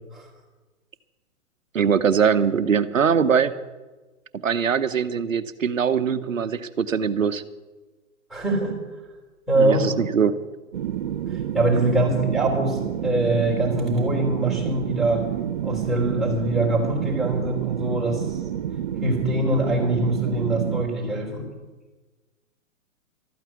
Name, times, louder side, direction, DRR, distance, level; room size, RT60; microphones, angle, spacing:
voice 1, 1.7-3.5 4.3-7.4 9.5-10.4, right 7 dB, 70° right, 13 dB, 0.9 m, -22 dB
voice 2, 8.3-8.8 9.5-9.9 11.3-15.2 15.6-18.4 19.0-21.4, right 2 dB, ahead, -5 dB, 3.7 m, -23 dB
sound 1, 10.7-20.9, right 10 dB, 35° right, 0.5 m, -29 dB
13.5 x 9.1 x 8.0 m, 1.2 s
figure-of-eight pair, 115°, 40 cm